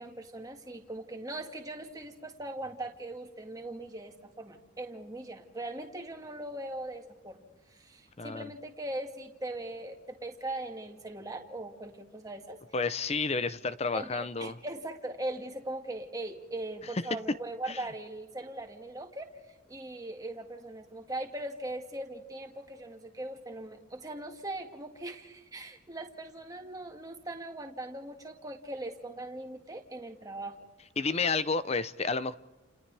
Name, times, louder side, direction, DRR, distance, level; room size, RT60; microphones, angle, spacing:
voice 1, 0.0-7.4 7.7-12.6 13.9-30.6, right 1 dB, 15° right, 3 dB, 2.0 m, -40 dB
voice 2, 8.2-8.5 12.7-14.6 17.7-17.8 31.0-32.3, left 4 dB, 30° left, 15 dB, 0.6 m, -31 dB
30.0 x 29.5 x 3.4 m, 1.1 s
head